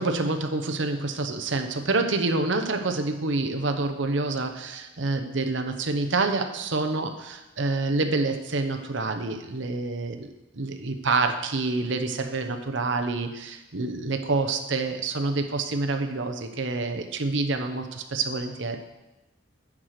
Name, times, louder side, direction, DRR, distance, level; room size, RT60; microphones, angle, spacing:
voice 1, 0.0-18.8, right 3 dB, 65° right, 6 dB, 0.9 m, -27 dB
9.8 x 4.8 x 6.5 m, 1.0 s
head